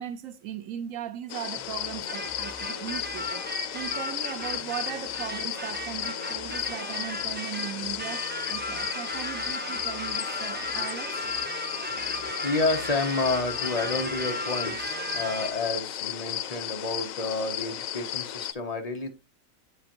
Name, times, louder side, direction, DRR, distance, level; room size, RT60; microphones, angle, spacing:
voice 1, 0.0-11.2, right 10 dB, 80° right, 1.2 m, -38 dB
sound 1, 1.3-18.5, left 11 dB, 90° left, 1.0 m, -34 dB
sound 2, 1.6-15.9, right 1 dB, 40° right, 1.6 m, -50 dB
sound 3, 2.1-15.7, right 1 dB, 10° right, 0.5 m, -36 dB
voice 2, 11.8-19.1, left 3 dB, 35° left, 0.8 m, -30 dB
8.9 x 5.2 x 2.9 m
omnidirectional pair, 1.4 m